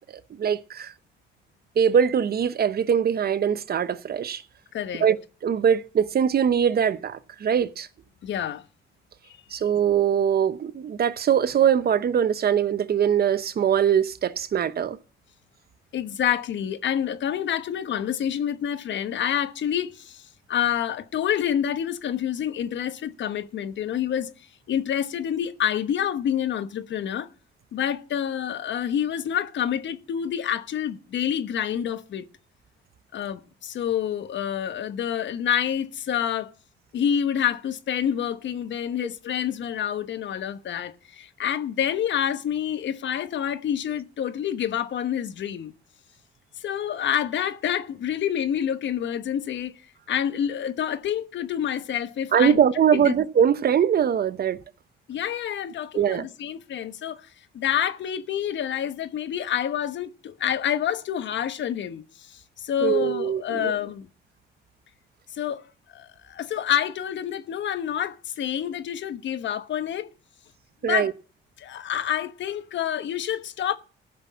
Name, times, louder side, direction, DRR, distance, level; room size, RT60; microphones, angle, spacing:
voice 1, 0.3-0.9 1.8-4.4 5.0-7.9 9.5-15.0 52.3-54.6 55.9-56.3 62.8-63.7 70.8-71.1, right 8 dB, 50° right, 0.9 m, -22 dB
voice 2, 4.7-5.1 8.2-8.6 9.5-9.6 15.9-24.3 24.7-27.3 27.7-32.2 33.1-36.5 36.9-45.7 46.6-49.7 50.1-52.6 52.9-53.1 55.1-64.1 65.3-65.6 65.9-70.1 70.8-71.1 71.6-73.8, left 9 dB, 65° left, 1.1 m, -28 dB
14.5 x 6.1 x 8.5 m
cardioid pair, 90°, 20 cm